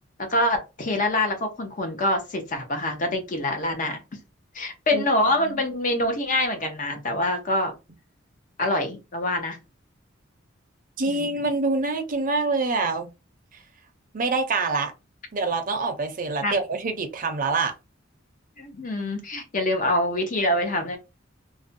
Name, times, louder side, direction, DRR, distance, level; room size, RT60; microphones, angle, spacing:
voice 1, 0.3-4.0 4.5-7.7 8.6-9.6 11.1-11.3 16.4-16.5 18.6-21.0, left 1 dB, 40° left, 0.7 m, -25 dB
voice 2, 11.0-13.1 14.1-14.9 15.3-17.7, right 3 dB, 45° right, 0.6 m, -25 dB
2.5 x 2.1 x 2.6 m
head